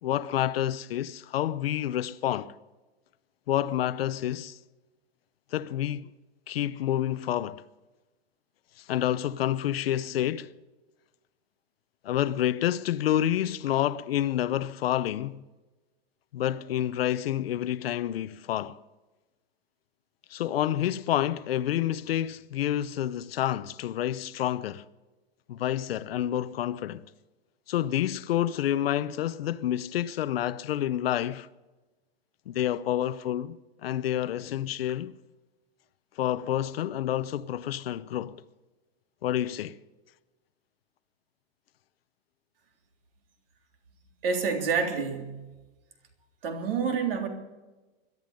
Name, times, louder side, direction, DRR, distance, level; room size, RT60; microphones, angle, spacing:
voice 1, 0.0-2.5 3.5-4.6 5.5-6.1 6.5-7.6 8.8-10.5 12.0-15.4 16.3-18.8 20.3-24.8 25.5-27.0 27.7-31.5 32.5-35.2 36.2-38.4 39.2-39.8, left 12 dB, 70° left, 0.8 m, -28 dB
voice 2, 44.2-45.4 46.4-47.3, right 5 dB, 60° right, 3.6 m, -28 dB
21.5 x 12.5 x 5.2 m
supercardioid pair, 175°, 31 cm